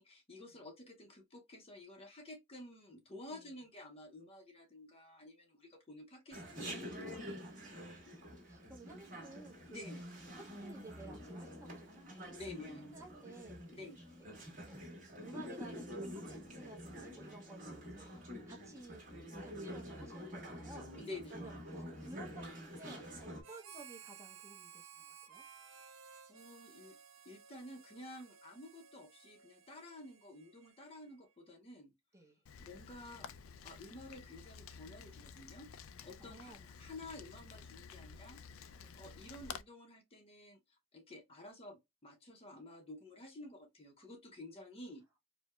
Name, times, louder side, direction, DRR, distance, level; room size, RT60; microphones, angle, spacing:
voice 1, 0.0-7.4 8.1-8.3 9.7-10.0 12.3-12.9 13.7-14.0 21.0-21.6 26.3-26.9 27.2-31.9 32.6-33.3 33.6-35.7 36.0-45.2, left 2 dB, 30° left, 0.6 m, -52 dB
Chatter, 6.3-23.4, equal, 40° right, 1.4 m, -47 dB
voice 2, 7.5-7.9 8.5-9.9 10.4-12.3 12.9-13.6 14.1-14.4 14.6-18.1 18.5-19.0 19.4-20.9 21.3-25.4 32.1-32.4 36.2-36.7 38.8-39.0, right 2 dB, 15° right, 0.7 m, -55 dB
Harmonica, 23.4-31.2, right 7 dB, 90° right, 0.7 m, -57 dB
Rain, 32.5-39.6, left 6 dB, 85° left, 0.4 m, -52 dB
4.6 x 2.0 x 2.2 m
head